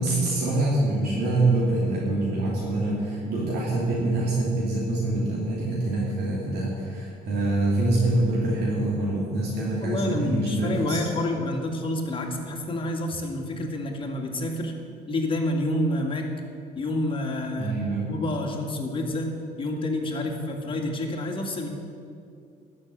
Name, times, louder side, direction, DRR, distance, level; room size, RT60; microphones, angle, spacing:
voice 1, 0.0-11.0 17.6-18.0, right 2 dB, 75° right, -5 dB, 2.9 m, -25 dB
voice 2, 9.8-14.7 15.1-16.3 16.8-17.7 18.0-21.7, left 1 dB, 30° left, 1 dB, 2.1 m, -28 dB
13.0 x 6.5 x 9.5 m, 2.4 s
cardioid pair, 110°, 17 cm